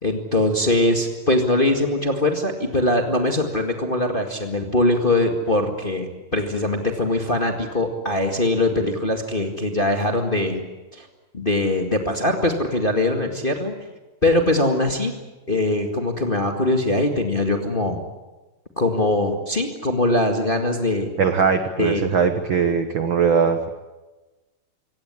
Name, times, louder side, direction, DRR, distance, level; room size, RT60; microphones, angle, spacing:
voice 1, 0.0-10.6 10.9-11.1 11.3-13.7 14.2-15.1 15.5-18.0 18.8-21.1 21.8-22.0, left 1 dB, 20° left, 4 dB, 1.5 m, -22 dB
voice 2, 21.2-23.7, right 6 dB, 60° right, 8 dB, 1.3 m, -20 dB
25.5 x 17.5 x 9.9 m, 1.1 s
omnidirectional pair, 3.9 m